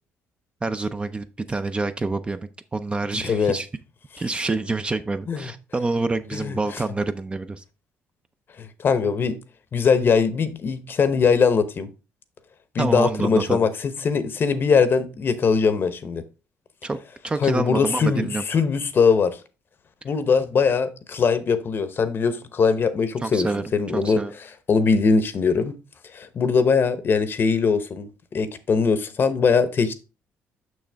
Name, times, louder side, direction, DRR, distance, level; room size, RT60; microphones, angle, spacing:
voice 1, 0.6-3.7 4.2-7.6 12.8-13.7 16.8-17.0 17.2-18.4 23.2-24.3, right 3 dB, 20° right, 0.5 m, -27 dB
voice 2, 3.2-3.6 5.3-5.5 6.3-6.6 8.6-9.4 9.7-11.9 12.7-16.2 17.4-19.4 20.0-24.2 24.7-25.7 26.1-29.9, left 5 dB, 45° left, 0.9 m, -21 dB
6.3 x 6.3 x 3.4 m
cardioid pair, 100°, 5 cm